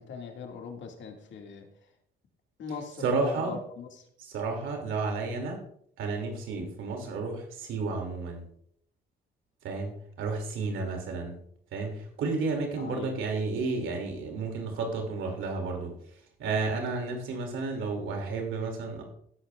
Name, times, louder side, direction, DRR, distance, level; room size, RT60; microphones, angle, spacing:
voice 1, 0.0-1.7 2.6-4.0 12.8-13.2, left 5 dB, 70° left, 3 dB, 2.2 m, -40 dB
voice 2, 3.0-3.6 4.2-5.6 6.0-8.4 9.6-11.4 11.7-15.9 16.4-19.0, right 4 dB, 85° right, 2 dB, 2.7 m, -32 dB
17.0 x 8.8 x 2.4 m, 0.64 s
cardioid pair, 90°, 20 cm